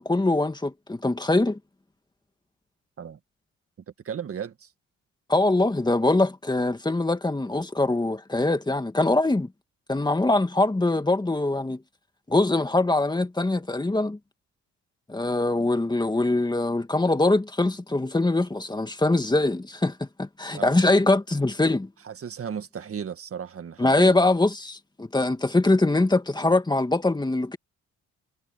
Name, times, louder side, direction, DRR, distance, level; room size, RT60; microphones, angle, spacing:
voice 1, 0.0-1.6 5.3-9.5 9.9-11.8 12.3-14.2 15.1-21.9 23.8-27.6, left 2 dB, 15° left, 2.2 m, -23 dB
voice 2, 4.0-4.7 20.5-20.9 22.0-24.2, right 7 dB, 50° right, 1.8 m, -35 dB
cardioid pair, 90°, 30 cm